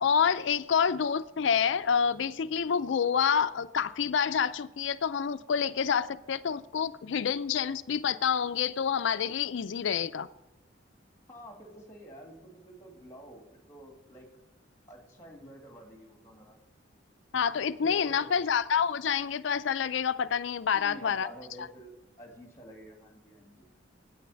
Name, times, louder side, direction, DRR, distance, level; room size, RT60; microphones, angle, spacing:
voice 1, 0.0-10.3 17.3-21.3 21.6-21.7, left 7 dB, 70° left, 14 dB, 0.4 m, -28 dB
voice 2, 11.3-14.3 14.9-16.6 17.8-18.5 20.7-23.6, equal, 15° left, 2 dB, 2.3 m, -49 dB
9.4 x 8.6 x 7.0 m, 0.94 s
head